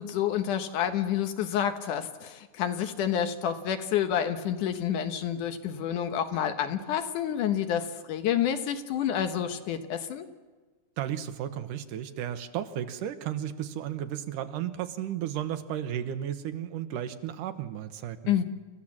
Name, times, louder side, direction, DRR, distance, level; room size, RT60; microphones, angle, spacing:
voice 1, 0.0-10.3 18.3-18.4, left 9 dB, 75° left, 8 dB, 2.6 m, -29 dB
voice 2, 11.0-18.4, right 10 dB, 80° right, 9 dB, 2.5 m, -34 dB
29.0 x 15.0 x 7.4 m, 1.3 s
omnidirectional pair, 3.7 m